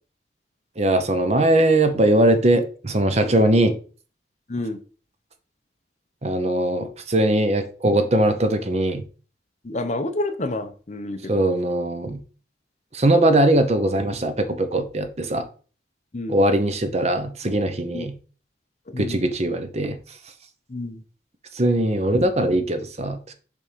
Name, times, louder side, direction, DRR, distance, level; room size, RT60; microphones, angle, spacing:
voice 1, 0.8-3.8 6.2-9.0 11.3-12.2 12.9-15.5 16.3-18.1 19.0-20.0 21.5-23.3, right 1 dB, 35° right, 9 dB, 0.8 m, -20 dB
voice 2, 9.6-11.4 16.1-16.4 17.9-18.1 18.9-19.2 20.7-21.0, left 2 dB, 40° left, 9 dB, 0.7 m, -29 dB
7.0 x 3.6 x 5.0 m, 0.38 s
head